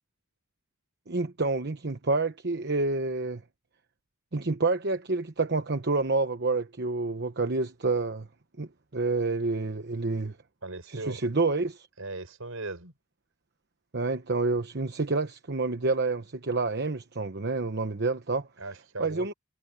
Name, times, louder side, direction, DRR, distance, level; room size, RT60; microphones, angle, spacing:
voice 1, 1.1-3.4 4.3-8.3 8.6-10.4 10.9-11.9 13.9-18.5 19.0-19.3, right 3 dB, 50° right, 1.0 m, -28 dB
voice 2, 10.6-11.2 12.0-12.9 18.6-19.3, right 2 dB, 80° right, 5.4 m, -38 dB
head